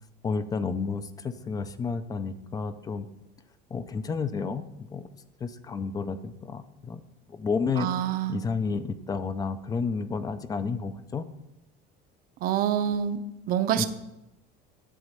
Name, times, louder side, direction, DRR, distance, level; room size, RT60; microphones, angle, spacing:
voice 1, 0.2-3.1 3.7-5.1 5.4-7.0 7.3-7.9 8.3-11.2 13.8-13.9, left 5 dB, 20° left, 12 dB, 0.4 m, -31 dB
voice 2, 7.8-8.4 12.4-13.2 13.5-13.9, right 10 dB, 50° right, 10 dB, 0.7 m, -26 dB
11.0 x 4.1 x 7.6 m, 0.93 s
cardioid pair, 165°, 20 cm